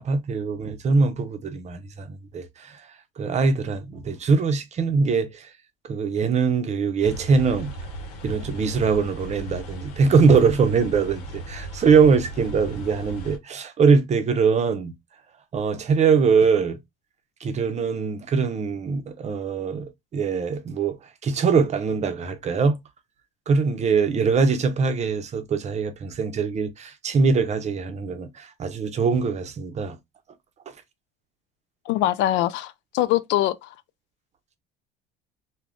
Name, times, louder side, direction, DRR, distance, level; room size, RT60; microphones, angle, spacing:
voice 1, 0.0-2.7 3.2-5.5 5.8-7.7 8.2-14.9 15.5-16.8 17.4-21.0 21.2-22.8 23.5-30.0, right 5 dB, 35° right, 0.6 m, -22 dB
sound 1, 7.0-13.4, right 1 dB, 90° left, 0.8 m, -36 dB
voice 2, 31.9-33.7, left 14 dB, 65° left, 0.4 m, -23 dB
2.4 x 2.2 x 3.4 m
supercardioid pair, 90°, 20 cm